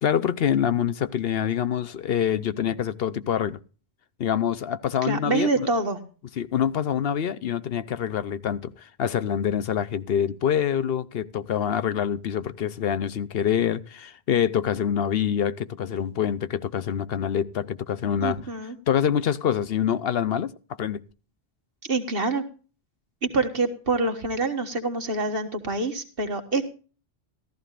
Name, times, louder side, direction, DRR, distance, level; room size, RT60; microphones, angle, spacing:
voice 1, 0.0-3.6 4.2-5.7 6.4-18.4 18.9-20.5 20.8-21.0, left 9 dB, 70° left, 0.9 m, -25 dB
voice 2, 5.0-6.0 18.2-18.7 21.8-22.4 23.2-26.6, right 3 dB, 65° right, 1.8 m, -26 dB
14.5 x 14.0 x 2.5 m
omnidirectional pair, 1.1 m